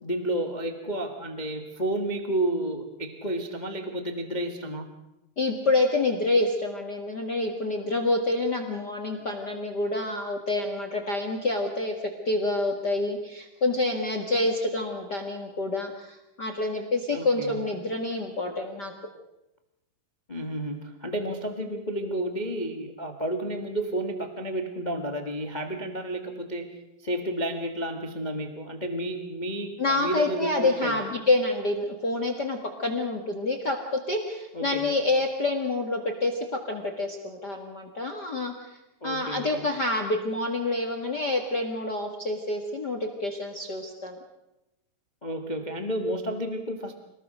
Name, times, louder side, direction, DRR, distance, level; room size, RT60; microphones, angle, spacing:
voice 1, 0.0-4.9 17.1-17.6 20.3-26.7 27.0-31.0 34.5-34.9 39.0-39.7 45.2-46.9, right 1 dB, 60° left, 6 dB, 0.4 m, -31 dB
voice 2, 5.4-11.9 12.2-18.9 29.8-33.8 34.1-36.4 36.7-38.7 39.0-44.2, left 2 dB, 40° left, 4 dB, 1.7 m, -27 dB
26.5 x 20.0 x 6.4 m, 0.93 s
omnidirectional pair, 4.2 m